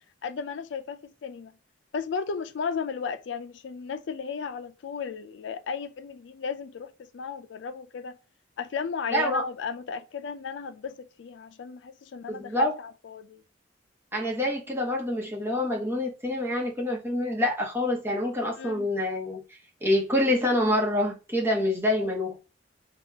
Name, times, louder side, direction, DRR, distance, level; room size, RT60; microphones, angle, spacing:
voice 1, 0.2-1.5 1.9-8.2 8.6-13.4 18.6-18.9, left 5 dB, 70° left, 0.4 m, -35 dB
voice 2, 9.1-9.5 12.3-12.7 14.1-19.4 19.8-22.4, left 1 dB, 15° right, 1.0 m, -26 dB
3.6 x 2.3 x 2.8 m
head